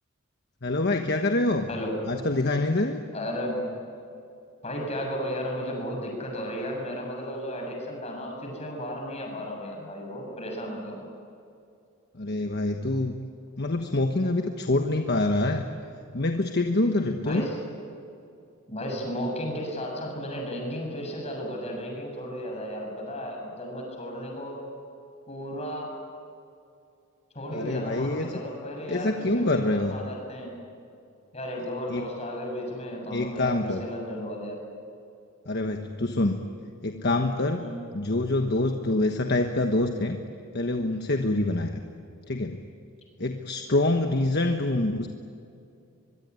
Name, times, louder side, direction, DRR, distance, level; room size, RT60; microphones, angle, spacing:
voice 1, 0.6-1.7 2.1-3.0 12.2-13.2 13.6-15.6 16.1-17.5 27.5-28.3 28.9-30.0 31.9-32.1 33.1-33.8 35.5-36.4 36.8-37.6 37.9-40.2 40.5-41.8 42.3-42.6 43.2-45.1, left 2 dB, 55° left, 5 dB, 1.3 m, -26 dB
voice 2, 3.1-3.6 4.6-11.0 17.2-17.6 18.7-24.6 25.3-25.9 27.3-30.5 31.3-34.6 37.6-37.8, equal, 30° left, 1 dB, 7.3 m, -34 dB
24.0 x 23.0 x 9.7 m, 2.5 s
head